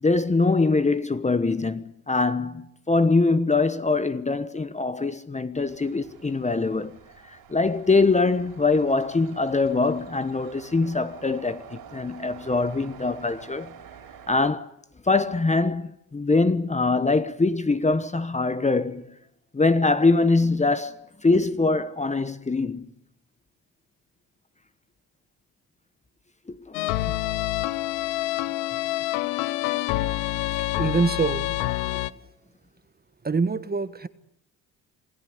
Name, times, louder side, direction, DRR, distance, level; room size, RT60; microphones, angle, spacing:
voice 1, 0.0-7.0 7.2-13.7 14.3-14.7 15.0-19.1 19.5-22.9 26.5-27.2 30.5-30.6, left 3 dB, 15° left, 1.2 m, -23 dB
sound 1, 5.5-14.5, right 8 dB, 60° right, 5.0 m, -47 dB
sound 2, 26.7-32.1, left 16 dB, 85° left, 1.0 m, -27 dB
voice 2, 30.8-31.6 31.8-32.0 33.2-34.1, right 4 dB, 25° right, 1.5 m, -25 dB
27.5 x 16.5 x 9.6 m
supercardioid pair, 75°, 40 cm